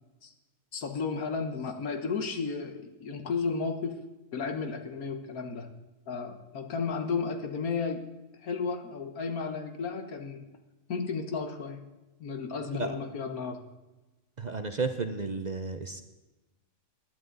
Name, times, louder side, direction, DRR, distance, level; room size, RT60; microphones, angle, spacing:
voice 1, 0.7-4.0 4.3-5.7 6.1-8.1 8.4-10.5 10.9-11.8 12.2-13.6, left 5 dB, 85° left, 6 dB, 1.7 m, -33 dB
voice 2, 14.4-16.0, right 4 dB, 40° right, 7 dB, 0.7 m, -32 dB
20.5 x 11.0 x 4.0 m, 1.1 s
omnidirectional pair, 1.5 m